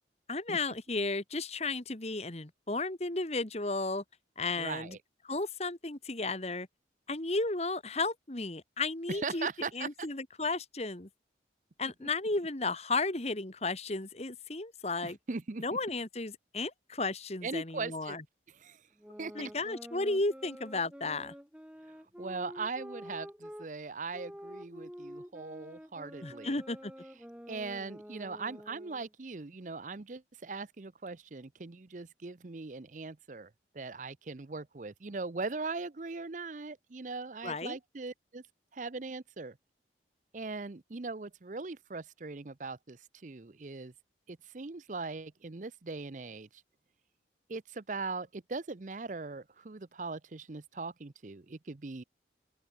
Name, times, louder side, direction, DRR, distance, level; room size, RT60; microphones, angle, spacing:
voice 1, 0.3-4.0 4.4-5.0 5.3-6.7 7.1-9.5 9.7-11.1 11.8-15.2 15.6-18.2 19.4-21.3 26.2-26.9 37.4-37.8, left 3 dB, 35° left, 1.7 m, -34 dB
voice 2, 4.6-5.0 9.1-10.1 15.0-15.6 17.4-18.2 18.5-18.8 19.2-19.3 22.2-26.6 27.5-38.4 38.7-39.6 40.3-43.9 44.3-46.5 47.5-52.0, right 4 dB, 45° right, 0.7 m, -40 dB
sound 1, 19.0-23.7 24.1-29.1, equal, 5° right, 6.1 m, -48 dB
open air
head